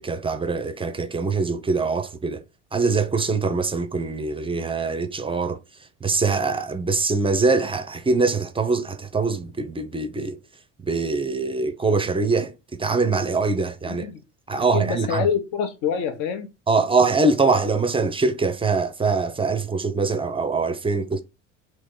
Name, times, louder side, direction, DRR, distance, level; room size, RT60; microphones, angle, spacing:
voice 1, 0.0-2.4 2.7-5.6 6.0-10.4 10.8-14.1 14.5-15.3 16.7-21.2, right 4 dB, 15° right, 0.4 m, -23 dB
voice 2, 13.9-14.2 14.7-16.5, left 7 dB, 70° left, 0.8 m, -26 dB
3.0 x 2.9 x 3.6 m
hypercardioid pair, 75°, 35 cm